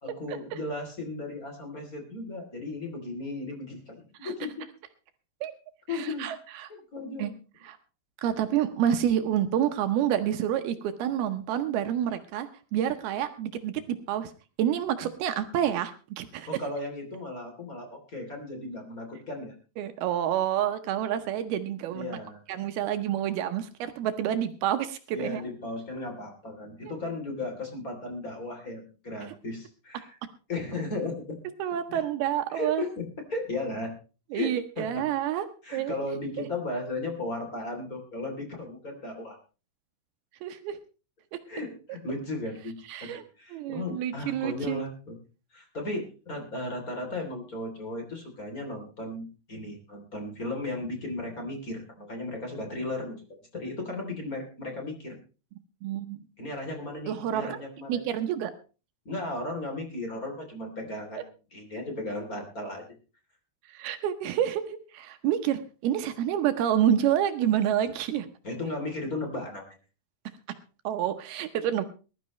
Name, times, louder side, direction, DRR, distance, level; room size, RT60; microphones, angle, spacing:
voice 1, 0.0-4.7 5.9-6.3 6.7-7.3 16.5-19.5 21.9-22.4 25.1-30.2 30.5-31.4 31.9-32.0 32.5-33.9 34.3-34.9 35.6-39.4 41.5-42.7 43.0-45.2 45.5-53.2 53.5-55.1 56.4-58.1 59.0-62.8 68.4-69.7, left 2 dB, 25° left, 3 dB, 3.0 m, -35 dB
voice 2, 5.9-6.7 7.2-7.3 7.6-7.8 8.2-14.3 14.6-16.5 19.8-22.2 22.5-25.4 26.8-26.9 31.6-32.9 34.3-35.5 35.7-36.0 36.4-36.5 40.4-40.8 42.9-43.2 43.5-44.8 55.8-56.2 57.1-57.6 57.9-58.5 63.7-68.3 70.8-71.9, right 10 dB, 75° right, 8 dB, 2.7 m, -28 dB
20.5 x 12.5 x 3.1 m, 0.33 s
omnidirectional pair, 4.7 m